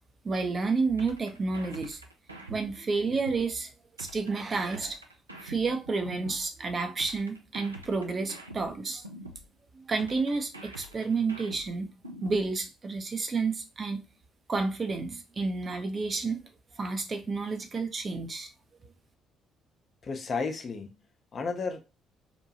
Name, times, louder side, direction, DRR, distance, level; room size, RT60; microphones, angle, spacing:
voice 1, 0.2-2.0 2.5-3.7 4.0-5.0 5.4-9.0 9.7-11.9 12.2-14.0 14.5-16.4 16.8-18.5, right 4 dB, 35° right, 0.6 m, -30 dB
sound 1, 1.0-3.5 4.0-6.5 7.0-9.5 10.0-12.5, right 1 dB, 90° right, 0.3 m, -46 dB
voice 2, 20.0-21.0 21.3-21.8, left 4 dB, 45° left, 0.6 m, -32 dB
2.9 x 2.2 x 2.8 m
figure-of-eight pair, 45°, 0 cm